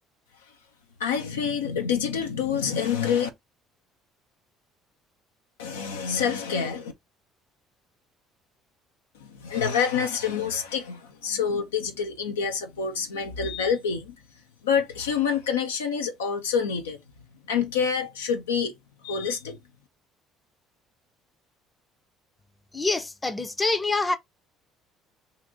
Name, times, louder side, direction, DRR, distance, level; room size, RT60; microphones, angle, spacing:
voice 1, 1.0-3.3 5.6-6.9 9.1-14.1 14.6-17.0 17.5-18.7 19.0-19.6, left 7 dB, 90° left, 0.5 m, -27 dB
voice 2, 22.7-24.1, left 3 dB, 20° left, 0.6 m, -26 dB
2.7 x 2.5 x 3.7 m
hypercardioid pair, 65°, 0 cm